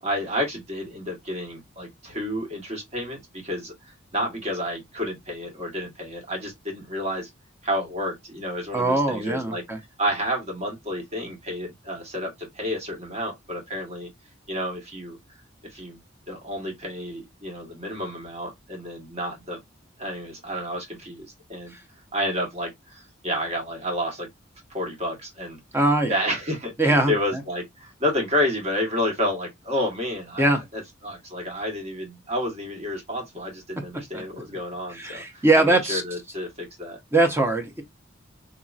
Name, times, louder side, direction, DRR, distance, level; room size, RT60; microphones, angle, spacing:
voice 1, 0.0-7.3 7.6-9.6 10.0-14.1 14.5-15.2 15.6-16.0 16.3-19.6 20.0-21.7 22.1-24.3 24.7-25.6 26.1-37.0, equal, 35° right, 1.4 m, -30 dB
voice 2, 8.7-9.8 21.7-21.8 25.7-26.2 26.8-27.1 30.4-30.6 34.1-34.4 34.9-36.0 37.1-37.8, right 2 dB, 15° right, 0.8 m, -21 dB
3.8 x 2.8 x 2.4 m
head